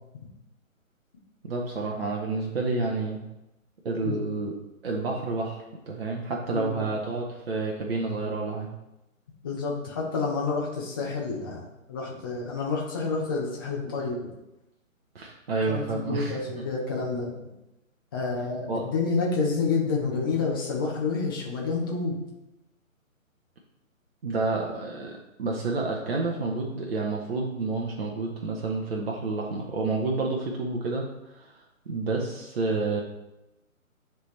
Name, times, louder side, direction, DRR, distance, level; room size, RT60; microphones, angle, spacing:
voice 1, 1.4-3.2 3.8-4.5 4.8-8.7 15.1-16.6 18.7-18.9 24.2-33.0, right 3 dB, 45° right, -1 dB, 0.9 m, -29 dB
voice 2, 6.5-6.9 9.4-14.2 15.6-17.3 18.1-22.2, left 4 dB, 15° left, -3 dB, 0.7 m, -29 dB
9.9 x 3.4 x 3.2 m, 0.93 s
figure-of-eight pair, 145°, 42 cm